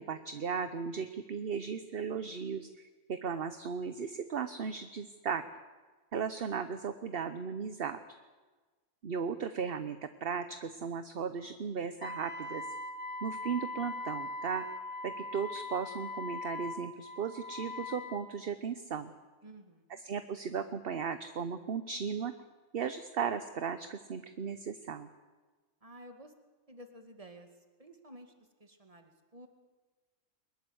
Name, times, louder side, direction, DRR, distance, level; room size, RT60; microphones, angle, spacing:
voice 1, 0.0-5.4 6.1-8.0 9.0-12.7 13.2-14.6 15.0-19.1 20.0-22.3 22.7-25.1, right 6 dB, 50° right, 10 dB, 1.0 m, -36 dB
Wind instrument woodwind instrument, 12.0-18.3, left 2 dB, 60° left, 2.2 m, -41 dB
voice 2, 19.4-20.0 25.8-26.3 26.7-29.5, right 1 dB, 25° right, 5 dB, 2.1 m, -53 dB
22.5 x 20.0 x 8.0 m, 1.3 s
omnidirectional pair, 1.4 m